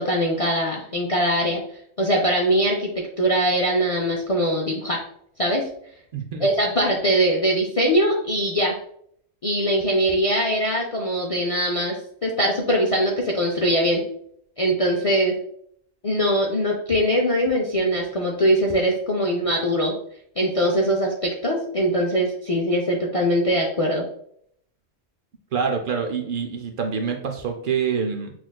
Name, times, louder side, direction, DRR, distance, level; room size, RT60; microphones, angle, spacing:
voice 1, 0.0-1.6 2.0-5.0 5.4-5.7 6.4-8.8 9.4-12.0 12.2-14.0 14.6-15.4 16.0-19.9 20.4-24.1, equal, 65° left, -1 dB, 0.3 m, -22 dB
voice 2, 6.1-6.5 25.5-28.3, right 6 dB, 65° right, 3 dB, 0.5 m, -26 dB
5.9 x 2.4 x 2.2 m, 0.67 s
omnidirectional pair, 1.3 m